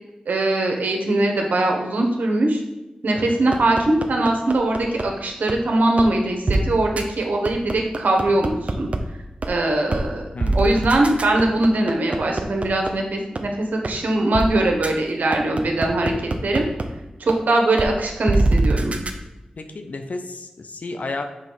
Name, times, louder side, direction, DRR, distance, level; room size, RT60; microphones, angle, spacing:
voice 1, 0.3-2.6 3.0-8.9 9.5-10.2 10.5-16.7 17.2-18.9, right 2 dB, 80° right, 1 dB, 1.1 m, -21 dB
sound 1, 3.5-5.0 5.5-5.6 6.0-6.1 6.5-6.6 7.0-7.1 7.4-9.0 9.4-9.5 9.9-10.0 10.4-12.9 13.4-13.5 13.8-13.9 14.3-14.5 14.8-14.9 15.3-16.8 17.3-17.4 17.8-17.9 18.3-19.1, right 2 dB, 50° right, 0.7 m, -22 dB
voice 2, 10.3-10.7 19.6-21.2, left 3 dB, 65° left, 6 dB, 0.6 m, -32 dB
6.4 x 3.1 x 5.6 m, 1.0 s
cardioid pair, 50°, 3 cm